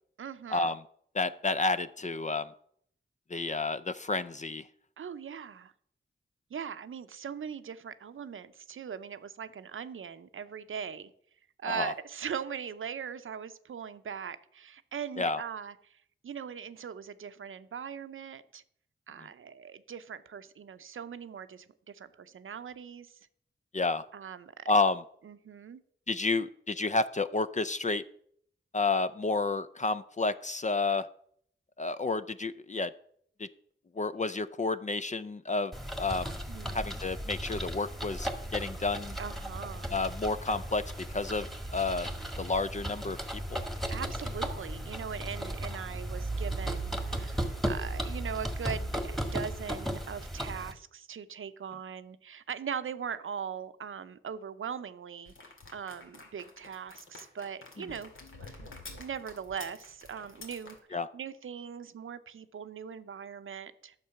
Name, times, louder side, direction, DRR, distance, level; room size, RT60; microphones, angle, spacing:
voice 1, 0.2-0.8 5.0-5.7 6.5-11.1 11.6-18.6 19.1-23.2 24.1-24.6 25.2-25.8 36.5-36.8 39.2-39.9 43.9-55.3 55.7-58.1 58.4-63.9, right 7 dB, 75° right, 12 dB, 0.7 m, -40 dB
voice 2, 1.1-2.5 3.3-4.6 11.7-11.9 15.2-15.4 23.7-24.0 24.7-25.0 26.1-28.0 28.7-31.1 31.8-32.9 33.4-33.5 34.0-35.7 36.0-36.4 36.7-39.2 39.9-41.5 41.7-42.1 42.4-43.6 60.9-61.1, left 3 dB, 35° left, 13 dB, 0.5 m, -30 dB
sound 1, 35.7-50.7, right 1 dB, ahead, 1.6 m, -36 dB
sound 2, 55.3-60.8, left 3 dB, 75° left, 2.1 m, -49 dB
9.5 x 6.7 x 5.8 m, 0.65 s
cardioid pair, 50°, 21 cm